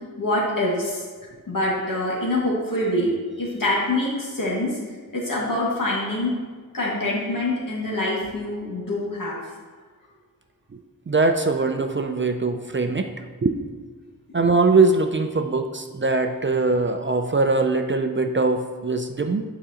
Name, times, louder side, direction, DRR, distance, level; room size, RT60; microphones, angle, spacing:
voice 1, 0.2-1.0 1.5-3.1 3.4-4.7 5.1-6.3 6.7-9.4, left 1 dB, 65° left, -5 dB, 2.0 m, -25 dB
voice 2, 11.1-13.1 13.4-13.6 14.3-19.4, right 3 dB, 35° right, 6 dB, 0.4 m, -21 dB
9.1 x 5.0 x 2.8 m, 1.5 s
wide cardioid pair, 95°, 35 cm